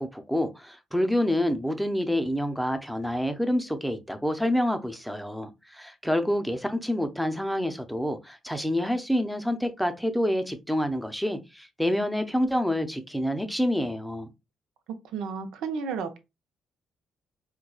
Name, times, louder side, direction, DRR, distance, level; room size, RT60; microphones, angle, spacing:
voice 1, 0.0-14.3, equal, ahead, 0.6 m, -27 dB
voice 2, 15.1-16.3, right 5 dB, 90° right, 0.7 m, -32 dB
4.5 x 2.2 x 2.3 m
cardioid pair, 90°, 0 cm